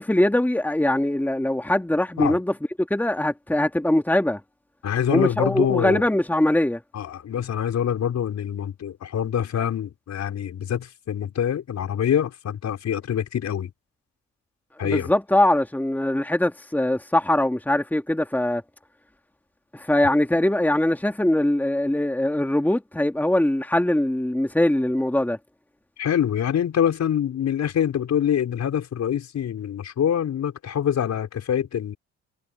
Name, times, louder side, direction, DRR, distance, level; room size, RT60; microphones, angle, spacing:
voice 1, 0.0-4.4 5.1-6.8 14.8-18.6 19.7-25.4, left 1 dB, 5° left, 2.8 m, -22 dB
voice 2, 4.8-6.0 6.9-13.7 14.8-15.1 26.0-32.0, left 9 dB, 60° left, 5.5 m, -25 dB
cardioid pair, 90°, 30 cm